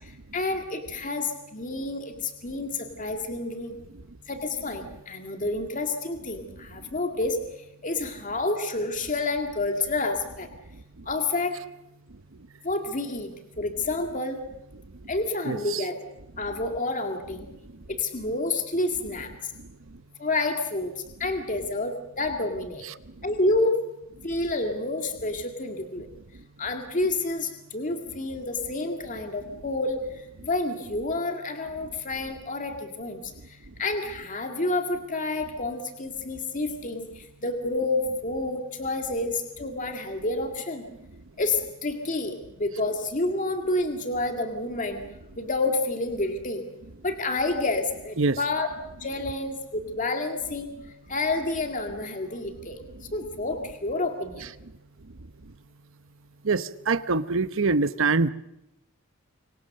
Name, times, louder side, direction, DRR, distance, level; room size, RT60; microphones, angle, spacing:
voice 1, 0.0-3.7 4.3-7.4 7.8-10.5 11.1-11.6 12.6-13.3 13.6-14.4 15.1-16.0 16.4-17.5 17.9-19.5 20.2-20.9 21.2-22.8 23.2-23.7 24.2-26.1 26.6-40.8 41.4-45.0 45.4-46.6 47.0-48.7 49.0-50.7 51.1-52.8 53.1-54.5, left 2 dB, 40° left, 5 dB, 2.1 m, -29 dB
voice 2, 15.5-15.8 48.2-48.4 56.4-58.3, right 3 dB, 65° right, 14 dB, 0.9 m, -24 dB
26.5 x 24.0 x 6.6 m, 0.86 s
head